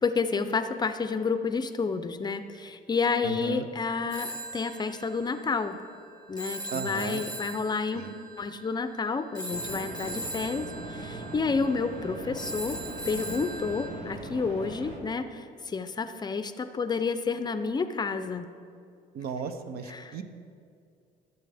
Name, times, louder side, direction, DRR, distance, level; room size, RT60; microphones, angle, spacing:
voice 1, 0.0-5.8 6.3-12.8 13.1-18.5 19.9-20.2, left 4 dB, 25° left, 9 dB, 0.5 m, -30 dB
voice 2, 3.2-3.7 6.7-7.3 7.9-8.1 19.1-20.2, right 6 dB, 65° right, 9 dB, 0.7 m, -35 dB
Telephone, 4.1-13.9, right 2 dB, 25° right, 1.5 m, -40 dB
sound 1, 9.5-15.0, right 2 dB, 85° right, 1.5 m, -40 dB
14.5 x 6.9 x 3.4 m, 2.4 s
cardioid pair, 110°, 17 cm